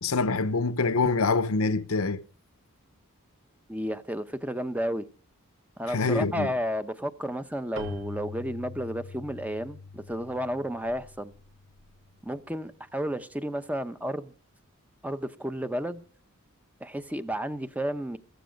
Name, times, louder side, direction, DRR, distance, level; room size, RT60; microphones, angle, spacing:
voice 1, 0.0-2.2 5.9-6.5, left 3 dB, 75° left, 0.8 m, -25 dB
voice 2, 3.7-5.0 5.8-11.3 12.2-14.3 15.0-16.0 16.8-18.2, equal, 5° right, 0.8 m, -32 dB
Keyboard (musical), 7.8-12.3, left 2 dB, 65° right, 1.8 m, -43 dB
15.5 x 15.0 x 5.2 m
head